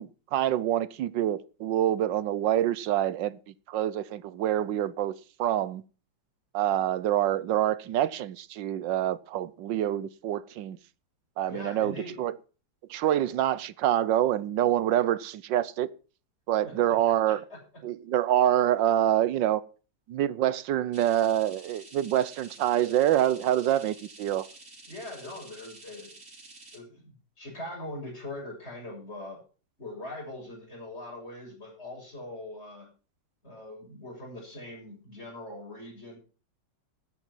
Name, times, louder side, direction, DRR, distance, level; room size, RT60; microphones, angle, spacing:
voice 1, 0.0-3.4 3.7-5.8 6.5-10.8 11.4-12.3 12.9-15.9 16.5-17.4 17.8-19.6 20.1-24.5, right 12 dB, 75° right, 1.4 m, -26 dB
voice 2, 11.5-12.2 16.6-16.7 17.3-17.6 24.9-26.1 26.7-29.4 29.8-32.9 33.4-36.2, left 1 dB, 35° left, 7.3 m, -41 dB
sound 1, 20.9-26.8, right 2 dB, 40° right, 3.6 m, -50 dB
13.5 x 9.2 x 5.5 m
omnidirectional pair, 2.0 m